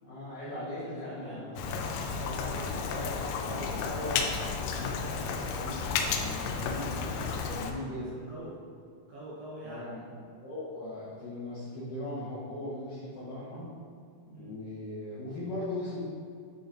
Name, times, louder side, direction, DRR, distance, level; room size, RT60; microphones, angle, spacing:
voice 1, 0.0-1.7 2.1-8.2 9.6-10.1 10.4-13.7 14.3-16.0, left 1 dB, 75° left, -11 dB, 2.0 m, -39 dB
voice 2, 0.6-2.0 6.9-8.6 9.1-9.9 14.3-14.6, right 1 dB, 75° right, -7 dB, 2.5 m, -45 dB
Rain, 1.6-7.7, left 5 dB, 90° left, 2.5 m, -33 dB
10.5 x 4.3 x 2.5 m, 2.3 s
omnidirectional pair, 5.6 m